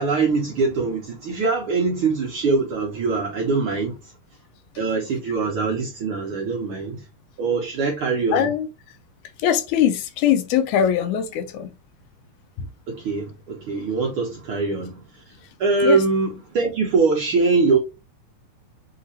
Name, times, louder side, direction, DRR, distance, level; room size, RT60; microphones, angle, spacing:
voice 1, 0.0-4.1 4.8-7.0 7.4-8.5 12.9-15.3 15.6-17.8, right 4 dB, 75° right, 1.2 m, -23 dB
voice 2, 8.3-8.7 9.4-11.7 12.6-12.7 15.8-16.0, left 9 dB, 85° left, 2.1 m, -21 dB
5.8 x 2.9 x 2.8 m
omnidirectional pair, 3.4 m